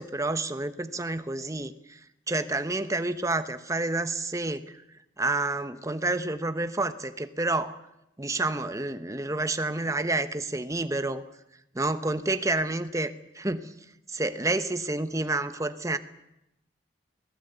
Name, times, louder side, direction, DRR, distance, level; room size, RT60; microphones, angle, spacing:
voice 1, 0.0-2.0 2.3-4.8 5.2-7.7 8.2-11.2 11.7-13.7 14.1-16.0, right 2 dB, 20° right, 10 dB, 1.0 m, -29 dB
23.5 x 17.0 x 8.1 m, 0.87 s
head